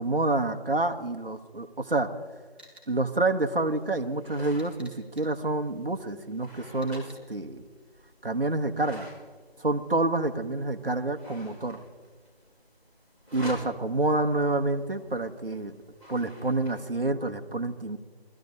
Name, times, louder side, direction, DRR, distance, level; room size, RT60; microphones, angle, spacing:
voice 1, 0.0-2.1 2.9-7.6 8.2-9.1 9.6-11.8 13.3-15.8 16.1-18.0, right 2 dB, 60° right, 6 dB, 1.1 m, -28 dB
sound 1, 2.6-2.9 4.6-5.3 6.8-7.1, right 1 dB, 10° right, 3.2 m, -52 dB
sound 2, 3.6-16.7, equal, 30° left, 6.2 m, -49 dB
21.0 x 13.5 x 4.0 m, 1.4 s
figure-of-eight pair, 180°, 32 cm